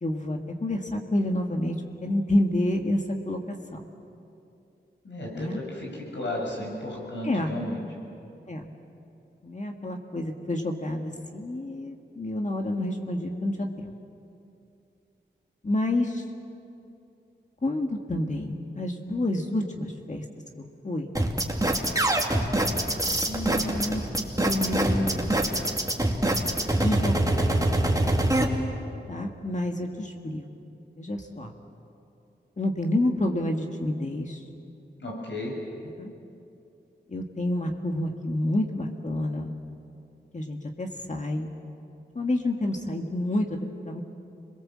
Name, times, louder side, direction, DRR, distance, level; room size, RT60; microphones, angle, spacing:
voice 1, 0.0-1.8 2.0-3.6 5.3-5.6 7.2-7.5 8.5-8.7 9.4-13.7 15.6-16.2 17.6-20.2 20.6-21.1 23.3-24.0 24.4-25.3 26.7-27.1 29.1-30.5 31.0-31.5 32.6-34.4 36.0-36.1 37.1-39.5 40.3-41.5 42.2-43.6 43.9-44.0, left 1 dB, 40° left, 2 dB, 1.8 m, -28 dB
voice 2, 5.0-7.8 35.0-35.5, left 1 dB, 80° left, -2 dB, 7.1 m, -34 dB
sound 1, 21.1-28.4, right 1 dB, 20° right, 2.7 m, -24 dB
28.0 x 22.0 x 7.5 m, 2.7 s
wide cardioid pair, 75°, 19 cm